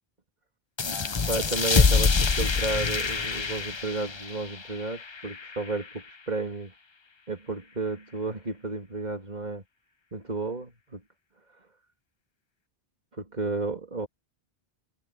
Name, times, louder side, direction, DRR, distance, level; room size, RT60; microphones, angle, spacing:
sound 1, 0.8-6.0, left 4 dB, 30° left, 0.7 m, -26 dB
voice 1, 1.3-6.7 7.3-9.6 10.1-11.0 13.1-14.1, right 3 dB, 45° right, 3.2 m, -32 dB
omnidirectional pair, 1.0 m